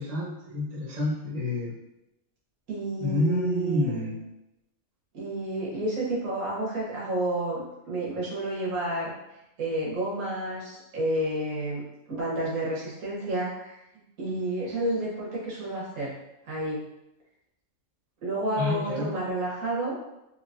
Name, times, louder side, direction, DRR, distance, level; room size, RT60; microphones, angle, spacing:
voice 1, 0.0-1.7 3.0-4.1 18.6-19.1, left 1 dB, 30° right, -6 dB, 1.0 m, -28 dB
voice 2, 2.7-4.2 5.1-9.1 9.6-11.8 12.1-13.8 14.2-16.1 16.4-16.8 18.2-20.0, right 1 dB, 85° right, -5 dB, 1.6 m, -30 dB
3.8 x 2.9 x 2.5 m, 0.89 s
omnidirectional pair, 1.4 m